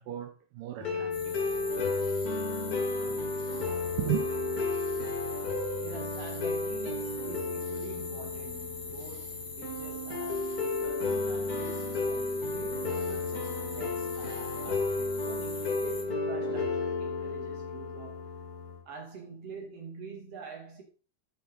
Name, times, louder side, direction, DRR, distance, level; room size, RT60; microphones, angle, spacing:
voice 1, 0.0-1.4 2.0-2.2 2.9-4.3, right 12 dB, 80° right, 1.9 m, -36 dB
sound 1, 0.8-18.8, left 3 dB, 40° left, 1.2 m, -33 dB
sound 2, 1.1-16.0, left 3 dB, 20° left, 2.3 m, -43 dB
voice 2, 5.8-18.2 18.8-20.8, right 4 dB, 40° right, 3.0 m, -46 dB
9.2 x 8.0 x 3.9 m
omnidirectional pair, 4.8 m